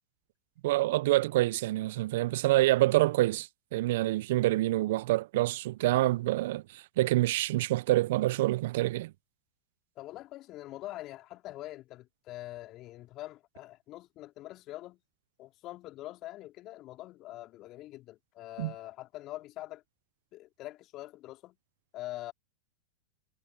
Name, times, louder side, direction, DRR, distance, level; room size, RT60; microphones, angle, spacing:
voice 1, 0.6-9.1 18.6-18.7, right 17 dB, 60° right, 1.0 m, -27 dB
voice 2, 9.9-15.0 15.4-19.8 20.3-21.6 21.9-22.3, left 16 dB, 40° left, 3.2 m, -44 dB
hypercardioid pair, 95°, 0 cm